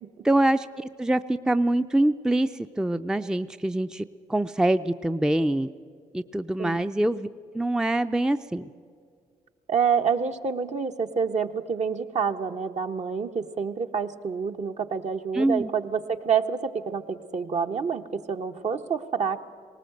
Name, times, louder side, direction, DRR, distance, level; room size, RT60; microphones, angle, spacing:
voice 1, 0.2-2.5 2.8-4.0 4.3-5.7 6.1-7.3 7.5-8.7 15.3-15.7, right 1 dB, 5° right, 10 dB, 0.5 m, -24 dB
voice 2, 9.7-19.4, right 6 dB, 55° right, 6 dB, 1.1 m, -27 dB
19.0 x 18.5 x 7.8 m, 2.2 s
supercardioid pair, 60°, 15 cm